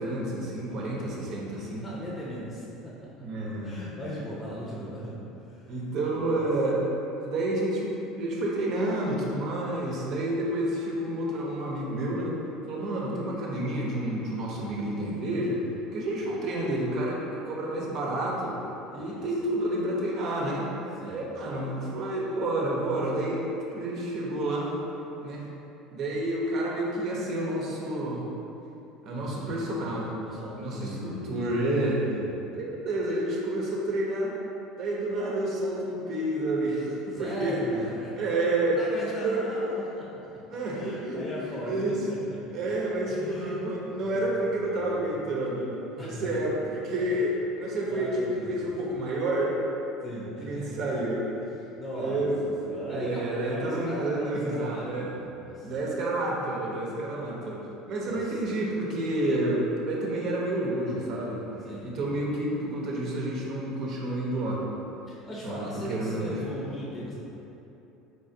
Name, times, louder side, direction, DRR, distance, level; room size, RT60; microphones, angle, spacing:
voice 1, 0.0-1.9 3.2-3.7 5.7-6.8 7.2-12.4 12.6-15.6 15.9-18.6 18.9-20.7 21.0-23.4 23.7-24.7 25.2-25.5 25.9-28.2 29.0-30.1 30.6-32.0 32.5-34.3 34.8-37.6 38.2-38.8 39.2-39.5 40.5-42.0 42.5-49.5 50.4-51.2 51.9-52.4 52.9-55.1 55.6-61.4 61.8-64.6 65.4-66.3, right 1 dB, 50° right, -3 dB, 0.8 m, -29 dB
voice 2, 0.6-3.1 3.6-5.8 6.2-6.5 16.2-16.4 18.9-19.3 21.0-21.3 29.2-29.9 30.2-31.4 32.1-32.3 37.1-38.2 38.6-42.7 43.1-44.3 44.6-45.2 46.0-46.4 47.1-47.3 47.8-48.7 50.0-50.8 51.7-52.3 52.7-55.7 58.0-58.4 61.6-62.0 65.1-67.1, equal, 25° left, -5 dB, 0.7 m, -39 dB
4.1 x 3.4 x 2.7 m, 2.9 s
figure-of-eight pair, 70°, 0 cm